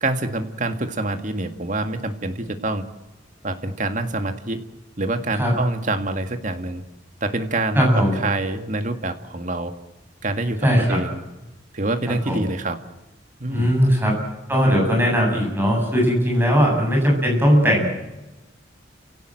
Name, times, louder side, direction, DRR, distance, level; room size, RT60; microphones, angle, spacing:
voice 1, 0.0-2.8 3.4-4.6 5.0-6.8 7.2-9.7 10.2-11.2 11.7-12.8 13.4-13.7, right 2 dB, 40° right, 8 dB, 1.9 m, -26 dB
voice 2, 7.7-8.1 10.6-11.0 12.3-12.5 13.5-14.1 14.5-17.9, equal, 10° right, -1 dB, 8.0 m, -18 dB
29.0 x 17.5 x 7.8 m, 1.1 s
head